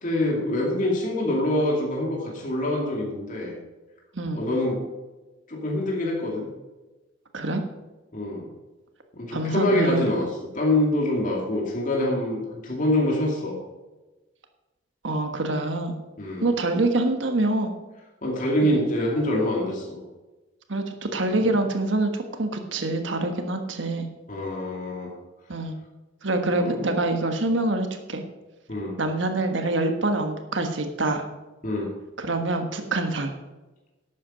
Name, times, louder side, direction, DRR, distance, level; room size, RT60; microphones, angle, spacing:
voice 1, 0.0-3.5 4.3-4.8 5.5-6.5 8.1-8.5 9.1-10.3 10.5-13.6 16.2-16.5 18.2-20.0 24.3-25.1 26.6-26.8 28.7-29.0 31.6-31.9, left 1 dB, 45° left, -2 dB, 2.5 m, -25 dB
voice 2, 4.1-4.5 7.3-7.6 9.3-10.1 15.0-16.0 16.4-17.7 18.6-18.7 20.7-24.1 25.5-25.7 26.2-28.2 29.0-31.2 32.2-33.4, right 2 dB, 70° right, 6 dB, 1.4 m, -25 dB
12.0 x 8.4 x 5.1 m, 1.1 s
head